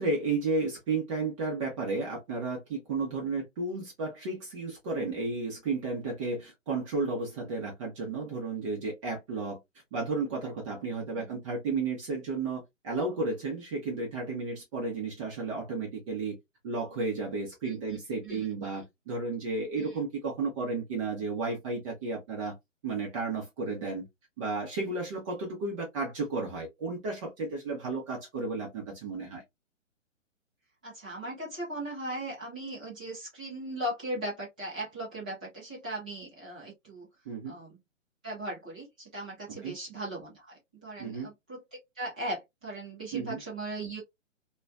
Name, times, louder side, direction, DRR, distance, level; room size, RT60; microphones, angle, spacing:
voice 1, 0.0-9.6 9.9-16.4 16.6-22.5 22.8-24.1 24.4-29.4 37.3-37.5 39.5-39.7 41.0-41.3 43.1-43.4, right 3 dB, 25° right, 0.7 m, -33 dB
voice 2, 17.6-18.0 18.2-18.8 19.8-20.0 30.8-37.1 37.4-37.8 38.2-44.0, right 1 dB, 5° right, 0.4 m, -38 dB
3.0 x 2.2 x 2.4 m
hypercardioid pair, 135°, 39 cm